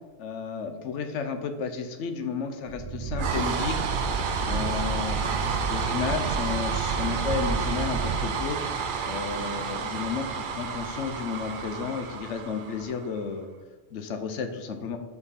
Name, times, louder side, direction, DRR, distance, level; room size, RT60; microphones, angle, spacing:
voice 1, 0.2-3.9 4.4-5.2 5.7-8.6 9.0-13.5 13.9-15.0, left 6 dB, 85° left, 7 dB, 1.0 m, -32 dB
sound 1, 2.7-13.2, right 5 dB, 55° right, 0.6 m, -29 dB
5.4 x 4.7 x 4.1 m, 1.3 s
omnidirectional pair, 1.2 m